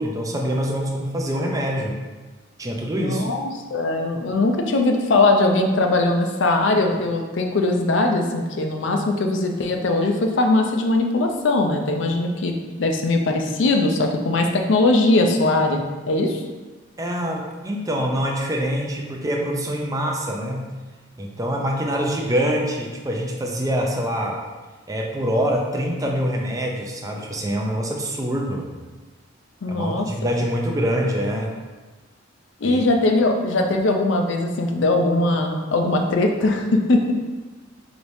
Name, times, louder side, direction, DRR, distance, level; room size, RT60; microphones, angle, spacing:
voice 1, 0.0-2.0 2.6-3.3 17.0-20.6 21.2-24.4 24.9-28.7 29.7-31.5 32.6-32.8, equal, 20° right, 0 dB, 0.5 m, -25 dB
voice 2, 3.0-15.8 16.1-16.4 29.6-30.1 32.6-37.1, left 2 dB, 75° left, 3 dB, 0.5 m, -20 dB
4.9 x 3.1 x 2.7 m, 1.3 s
head